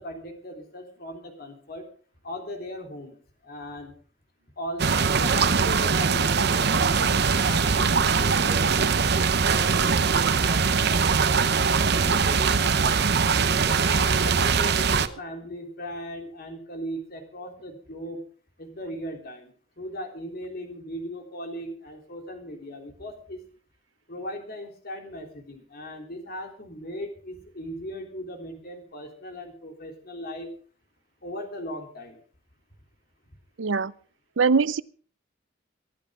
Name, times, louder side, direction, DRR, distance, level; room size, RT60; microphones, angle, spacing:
voice 1, 0.0-1.8 2.2-3.1 3.4-3.9 4.6-11.1 11.9-18.2 18.6-23.4 24.1-30.5 31.2-32.2, equal, 55° left, 3.5 m, -38 dB
sound 1, 4.8-15.1, right 5 dB, 60° right, 0.8 m, -22 dB
voice 2, 33.6-33.9 34.4-34.8, right 5 dB, 85° right, 0.6 m, -23 dB
23.5 x 10.5 x 3.8 m
head